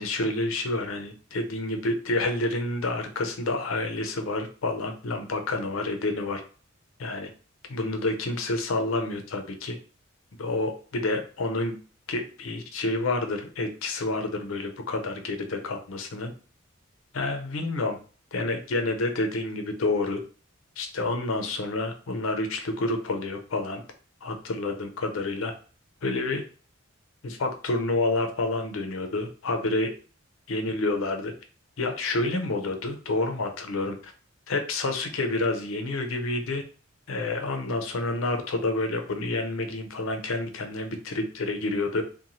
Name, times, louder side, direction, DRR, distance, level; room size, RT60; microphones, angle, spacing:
voice 1, 0.0-6.4 7.0-7.3 7.7-9.8 10.4-11.7 12.1-16.3 17.1-18.0 18.3-20.2 20.8-23.8 24.2-25.5 26.0-26.4 27.2-29.9 30.5-31.3 31.8-34.1 34.5-36.6 37.1-42.0, left 2 dB, 80° left, 5 dB, 0.5 m, -29 dB
2.6 x 2.2 x 2.9 m, 0.39 s
head